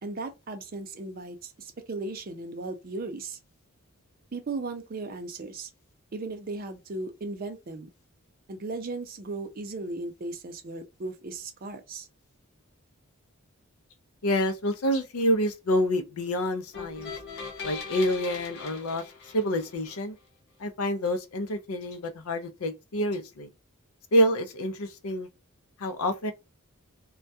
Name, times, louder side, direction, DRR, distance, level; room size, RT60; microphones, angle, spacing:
voice 1, 0.0-3.4 4.3-5.7 6.1-7.9 8.5-12.1, right 3 dB, 45° right, 0.5 m, -36 dB
voice 2, 14.2-17.1 17.6-19.0 19.3-20.1 20.6-23.5 24.1-25.3 25.8-26.3, equal, 90° left, 0.5 m, -27 dB
sound 1, 16.7-20.0, left 5 dB, 60° left, 0.8 m, -40 dB
2.2 x 2.1 x 2.6 m
head